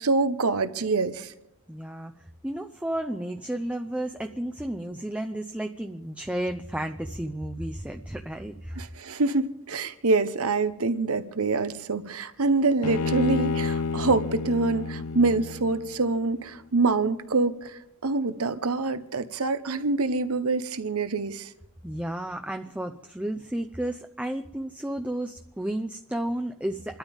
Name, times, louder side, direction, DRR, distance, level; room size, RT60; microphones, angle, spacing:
voice 1, 0.0-1.3 8.8-21.5, right 3 dB, 80° right, 1.0 m, -25 dB
voice 2, 1.7-2.1 2.4-8.8 21.8-27.0, right 1 dB, 5° right, 0.6 m, -32 dB
Bowed string instrument, 12.8-16.1, left 4 dB, 80° left, 0.5 m, -30 dB
29.5 x 12.5 x 3.6 m
head